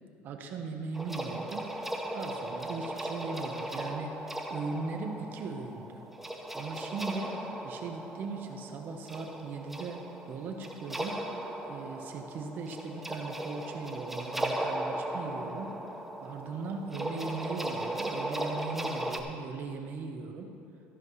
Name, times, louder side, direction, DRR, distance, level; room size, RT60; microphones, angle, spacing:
voice 1, 0.2-1.7 2.1-4.2 4.5-6.0 6.5-7.4 7.6-11.2 11.7-15.7 16.2-20.5, right 4 dB, 45° right, 5 dB, 1.0 m, -38 dB
sound 1, 0.9-19.2, right 1 dB, 5° right, 0.6 m, -37 dB
13.5 x 10.5 x 3.2 m, 2.6 s
cardioid pair, 150°, 5 cm